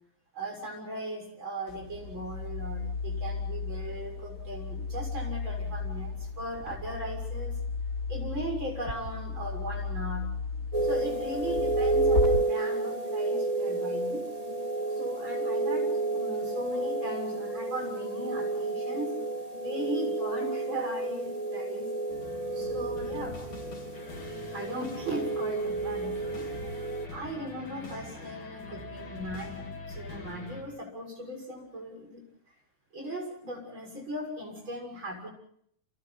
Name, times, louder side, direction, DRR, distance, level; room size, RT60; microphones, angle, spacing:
voice 1, 0.3-7.6 8.1-10.3 10.8-14.2 15.0-19.2 19.6-21.9 22.5-23.4 24.5-26.5 27.1-32.2 32.9-35.3, right 1 dB, 40° right, 3 dB, 7.4 m, -38 dB
sound 1, 1.7-12.3, left 4 dB, 30° left, 2.6 m, -35 dB
sound 2, 10.7-27.1, right 2 dB, 15° right, 2.2 m, -31 dB
sound 3, 22.1-30.6, left 2 dB, 85° left, 6.4 m, -43 dB
30.0 x 28.0 x 4.2 m, 0.65 s
omnidirectional pair, 3.4 m